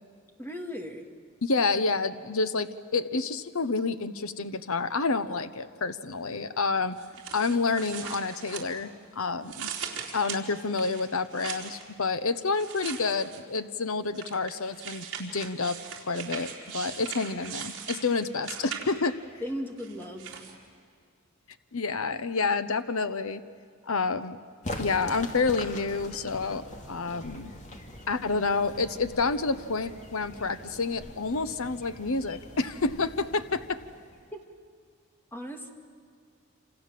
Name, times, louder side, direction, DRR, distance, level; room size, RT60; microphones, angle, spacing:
voice 1, 0.4-1.1 19.4-20.4 34.3-34.5 35.3-35.7, equal, 10° left, 3 dB, 2.3 m, -37 dB
voice 2, 1.4-7.0 7.3-8.9 9.2-9.7 10.1-15.8 16.1-19.2 21.7-23.4 23.9-24.4 24.8-27.5 28.1-33.8, left 4 dB, 70° left, 11 dB, 1.0 m, -29 dB
sound 1, 7.0-9.1 9.4-11.8 12.5-13.6 14.1-19.2 19.8-20.5, right 7 dB, 55° right, 3.9 m, -40 dB
sound 2, 24.6-34.4, left 1 dB, 35° left, 2.4 m, -43 dB
sound 3, 26.4-32.0, equal, 50° left, 5.7 m, -57 dB
28.0 x 27.5 x 7.7 m, 2.2 s
head